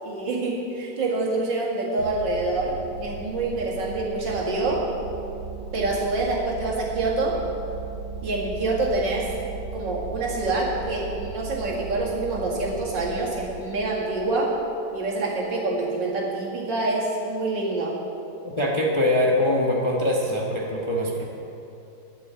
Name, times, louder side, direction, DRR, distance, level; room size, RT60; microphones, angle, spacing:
voice 1, 0.0-4.8 5.7-7.4 8.2-9.3 9.7-14.6 14.9-17.9, right 2 dB, 70° right, -4 dB, 2.7 m, -26 dB
sound 1, 2.0-14.9, right 5 dB, 85° right, 1.7 m, -37 dB
voice 2, 18.4-21.2, left 1 dB, 20° left, -2 dB, 1.0 m, -23 dB
10.5 x 7.3 x 8.2 m, 2.8 s
omnidirectional pair, 2.1 m